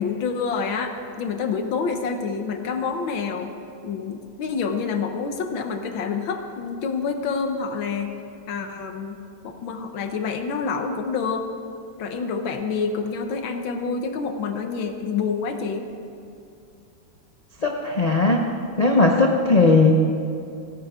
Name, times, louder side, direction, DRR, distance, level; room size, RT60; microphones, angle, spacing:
voice 1, 0.0-3.5 3.8-8.2 8.5-11.5 12.0-15.9 19.3-19.5, left 5 dB, 80° left, 6 dB, 1.8 m, -27 dB
voice 2, 17.6-18.5 18.8-20.0, left 3 dB, 50° left, 1 dB, 0.4 m, -18 dB
28.5 x 9.4 x 3.7 m, 2.6 s
omnidirectional pair, 2.1 m